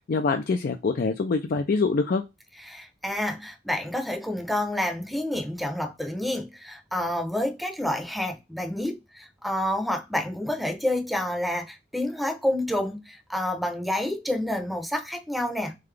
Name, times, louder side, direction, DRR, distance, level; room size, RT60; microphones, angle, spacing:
voice 1, 0.1-2.2, left 4 dB, 50° left, 0.4 m, -25 dB
voice 2, 2.7-15.7, left 1 dB, ahead, 0.7 m, -29 dB
3.9 x 3.7 x 3.3 m
head